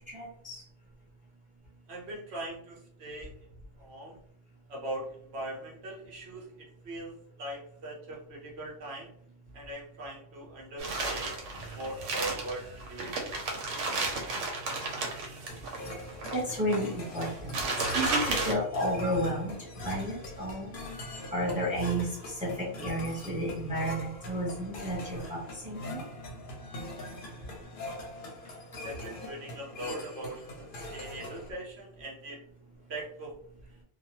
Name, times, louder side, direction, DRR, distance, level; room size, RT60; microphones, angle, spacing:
voice 1, 0.1-0.6 16.3-17.5 17.9-20.7 21.3-26.0, equal, 10° right, -4 dB, 0.7 m, -32 dB
voice 2, 1.9-3.3 3.8-4.2 4.7-6.5 6.8-7.1 7.4-9.1 9.5-11.4 11.7-13.9 28.8-32.4 32.9-33.3, right 1 dB, 65° right, -2 dB, 1.0 m, -41 dB
sound 1, 10.8-18.5, right 3 dB, 85° right, 1.0 m, -33 dB
sound 2, 15.5-31.5, left 1 dB, 55° left, 0.7 m, -43 dB
2.9 x 2.2 x 2.8 m, 0.62 s
omnidirectional pair, 1.2 m